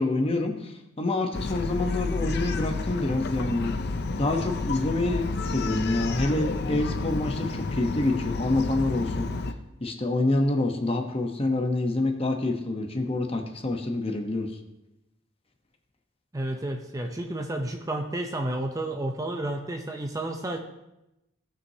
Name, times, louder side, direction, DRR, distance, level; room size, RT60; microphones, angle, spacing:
voice 1, 0.0-3.8 4.2-9.3 9.8-14.5, left 2 dB, 25° left, 4 dB, 0.9 m, -27 dB
Bark, 1.3-9.5, left 3 dB, 50° left, 0.6 m, -30 dB
voice 2, 16.3-20.6, right 1 dB, 15° right, 3 dB, 0.6 m, -31 dB
17.5 x 6.2 x 2.8 m, 0.92 s
head